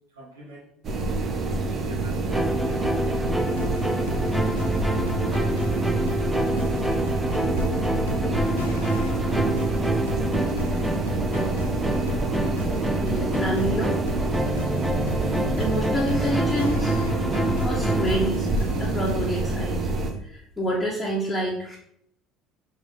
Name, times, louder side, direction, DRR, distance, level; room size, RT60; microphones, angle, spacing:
voice 1, 0.1-0.7 1.6-2.9 3.3-3.7 3.9-4.5, equal, 80° right, -6 dB, 1.9 m, -45 dB
sound 1, 0.8-20.1, right 3 dB, 40° right, 1.0 m, -27 dB
sound 2, 2.3-18.3, right 1 dB, 5° right, 0.6 m, -28 dB
sound 3, 3.5-19.3, equal, 85° left, 0.7 m, -35 dB
voice 2, 13.0-14.0 15.1-17.0 17.6-18.5 18.8-19.8 20.2-21.8, right 1 dB, 15° left, -5 dB, 1.5 m, -28 dB
5.8 x 4.6 x 3.9 m, 0.71 s
figure-of-eight pair, 60°, 0 cm